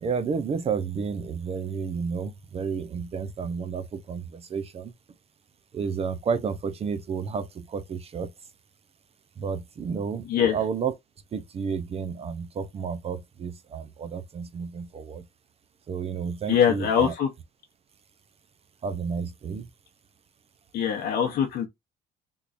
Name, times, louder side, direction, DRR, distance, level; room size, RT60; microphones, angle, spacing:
voice 1, 0.0-4.9 5.7-8.3 9.4-10.9 11.3-15.2 15.9-17.1 18.8-19.7, right 6 dB, 35° right, 0.5 m, -31 dB
voice 2, 16.5-17.3 20.7-21.7, left 8 dB, 70° left, 0.8 m, -23 dB
3.6 x 3.0 x 2.5 m
cardioid pair, 110°, 17 cm